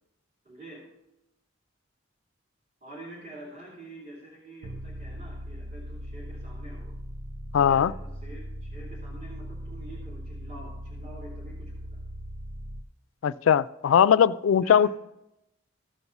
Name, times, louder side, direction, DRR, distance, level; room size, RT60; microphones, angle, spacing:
voice 1, 0.4-0.8 2.8-6.9 7.6-12.0 14.6-14.9, right 1 dB, 40° right, 2.9 m, -46 dB
sound 1, 4.6-12.8, equal, 90° right, 0.8 m, -39 dB
voice 2, 7.5-7.9 13.2-14.9, left 8 dB, 80° left, 0.3 m, -20 dB
15.0 x 5.5 x 5.9 m
head